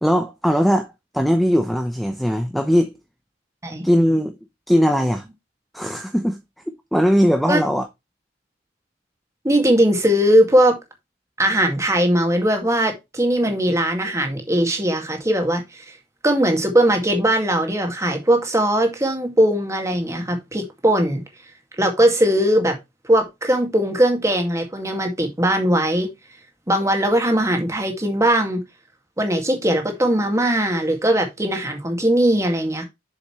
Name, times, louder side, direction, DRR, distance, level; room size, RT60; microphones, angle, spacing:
voice 1, 0.0-3.0 3.8-4.4 4.7-5.2 5.7-6.4 6.9-7.9, equal, ahead, 0.7 m, -19 dB
voice 2, 9.4-10.8 11.4-15.8 16.2-21.2 21.8-22.8 23.0-26.1 26.7-28.6 29.2-32.8, right 1 dB, 15° right, 2.1 m, -19 dB
7.1 x 6.9 x 3.2 m
head